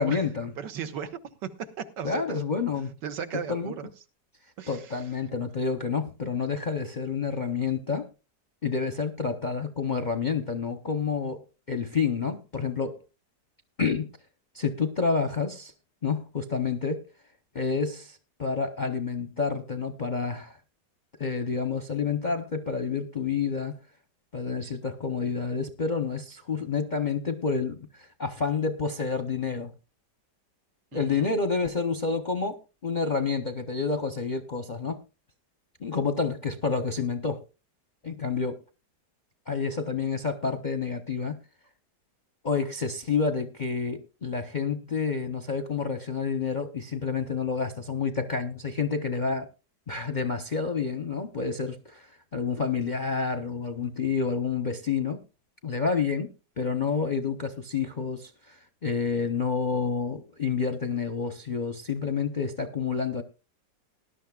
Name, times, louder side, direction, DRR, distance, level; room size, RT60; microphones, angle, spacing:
voice 1, 0.0-0.5 2.0-2.9 3.5-3.7 4.7-8.1 8.6-11.4 11.7-13.0 13.8-14.1 14.5-15.7 16.0-17.1 17.5-20.6 21.2-23.8 24.3-29.7 30.9-35.0 35.8-37.4 38.0-38.6 39.5-41.4 42.4-49.5 49.9-55.2 55.6-56.3 56.6-63.2, left 5 dB, 45° left, 0.6 m, -29 dB
voice 2, 0.6-2.4 3.0-3.9 4.6-5.0 30.9-31.3, right 7 dB, 85° right, 1.7 m, -36 dB
19.5 x 11.5 x 2.3 m
omnidirectional pair, 1.9 m